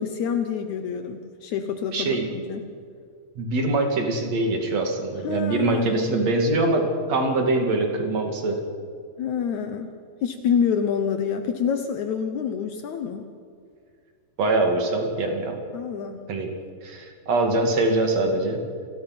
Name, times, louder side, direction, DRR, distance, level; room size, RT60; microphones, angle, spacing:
voice 1, 0.0-2.7 5.2-6.2 9.2-9.9 10.2-13.3 15.7-16.3, left 7 dB, 85° left, 7 dB, 1.6 m, -27 dB
voice 2, 1.9-2.3 3.4-8.6 14.4-15.6 16.3-16.5 16.8-18.6, right 2 dB, 45° right, 3 dB, 3.1 m, -23 dB
29.0 x 20.0 x 6.1 m, 2.3 s
omnidirectional pair, 5.0 m